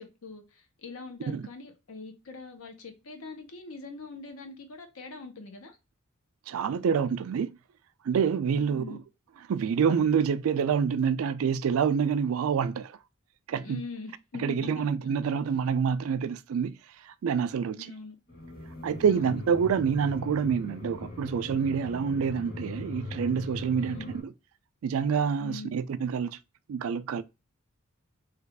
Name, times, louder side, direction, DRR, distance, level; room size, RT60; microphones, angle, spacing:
voice 1, 0.0-5.8 8.6-9.0 13.6-14.7 15.3-15.4 17.8-18.2 19.1-19.4 23.8-24.1 25.4-25.7, left 3 dB, 70° left, 0.7 m, -43 dB
voice 2, 6.5-7.6 8.0-9.0 9.5-13.0 13.5-13.8 14.4-17.9 18.8-24.3 24.8-26.4 26.7-27.2, right 6 dB, 65° right, 0.3 m, -27 dB
sound 1, 18.3-24.2, left 2 dB, 50° left, 1.5 m, -40 dB
3.2 x 2.3 x 3.3 m
head